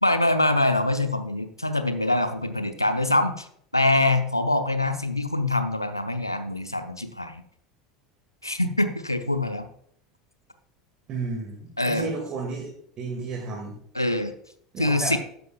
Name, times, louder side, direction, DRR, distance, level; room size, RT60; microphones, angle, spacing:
voice 1, 0.0-3.5 3.7-7.4 8.4-9.7 11.8-12.1 13.9-14.3 14.8-15.2, left 2 dB, 90° left, 9 dB, 0.7 m, -24 dB
voice 2, 11.1-12.7 13.0-13.8 14.7-15.1, right 4 dB, 40° right, 1 dB, 2.1 m, -32 dB
12.5 x 9.4 x 2.4 m, 0.65 s
figure-of-eight pair, 75°, 2 cm